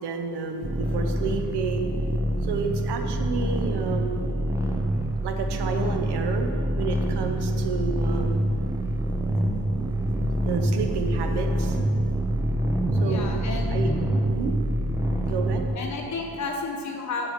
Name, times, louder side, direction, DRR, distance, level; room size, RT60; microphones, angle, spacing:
voice 1, 0.0-1.9 2.4-4.3 5.2-6.5 6.8-8.4 10.4-11.8 13.0-13.3 13.7-13.9 14.3-14.5 15.2-15.6, right 5 dB, 80° right, 5 dB, 0.9 m, -30 dB
sound 1, 0.6-15.7, right 1 dB, 10° right, 0.4 m, -26 dB
voice 2, 13.0-13.7 15.7-17.3, left 3 dB, 45° left, 1 dB, 1.0 m, -32 dB
7.2 x 6.9 x 5.1 m, 2.4 s
cardioid pair, 170°, 39 cm